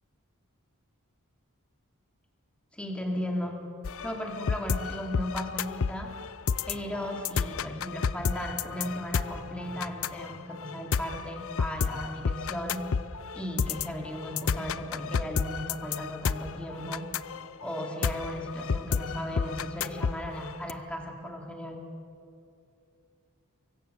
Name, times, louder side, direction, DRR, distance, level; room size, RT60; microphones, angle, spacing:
voice 1, 2.7-3.6 4.0-6.2 6.7-12.8 13.3-17.1 17.6-21.8, equal, 5° left, 1 dB, 2.6 m, -36 dB
sound 1, 3.8-20.7, left 6 dB, 65° left, 0.5 m, -31 dB
24.0 x 24.0 x 6.8 m, 2.5 s
head